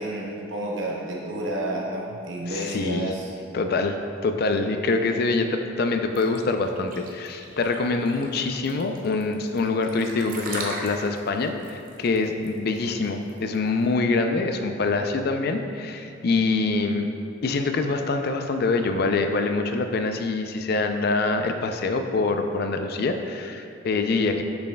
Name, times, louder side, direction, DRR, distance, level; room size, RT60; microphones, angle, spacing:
voice 1, 0.0-3.3, right 1 dB, 75° right, -3 dB, 0.9 m, -30 dB
voice 2, 2.5-3.1 3.5-4.0 4.2-17.1 17.4-24.4, left 3 dB, 55° left, 6 dB, 0.4 m, -25 dB
sound 1, 6.1-13.8, right 2 dB, 45° right, 0.7 m, -38 dB
6.8 x 6.2 x 2.2 m, 2.5 s
head